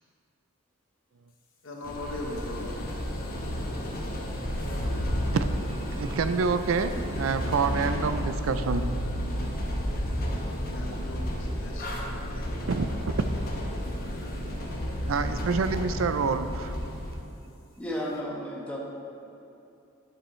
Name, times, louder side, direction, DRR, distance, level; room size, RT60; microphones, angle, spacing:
voice 1, 1.6-2.9 10.6-12.5, left 2 dB, 70° left, 0 dB, 1.1 m, -40 dB
sound 1, 1.8-17.1, equal, 45° left, 1.0 m, -32 dB
voice 2, 4.9-9.0 12.7-12.9 13.5-13.6 15.1-16.8, right 5 dB, 85° right, 10 dB, 0.4 m, -28 dB
sound 2, 8.5-14.5, right 1 dB, 15° right, 0.5 m, -40 dB
voice 3, 17.8-18.8, equal, 5° left, -4 dB, 1.1 m, -33 dB
10.0 x 8.6 x 3.2 m, 2.7 s
head